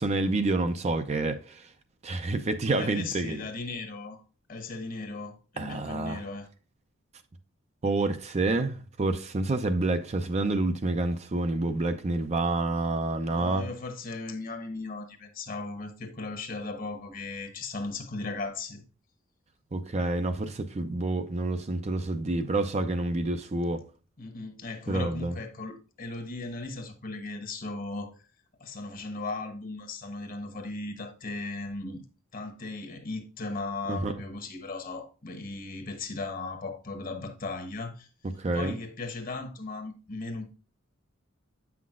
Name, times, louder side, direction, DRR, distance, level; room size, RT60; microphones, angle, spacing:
voice 1, 0.0-1.6 2.0-3.4 5.6-6.2 7.8-13.6 19.7-23.8 24.9-25.3 33.9-34.1 38.4-38.8, right 2 dB, 35° right, 0.5 m, -28 dB
voice 2, 2.7-4.2 4.5-6.5 13.3-18.8 24.2-28.3 28.6-32.0 32.3-38.1 38.5-40.5, left 3 dB, 45° left, 1.0 m, -37 dB
8.3 x 5.8 x 2.4 m
head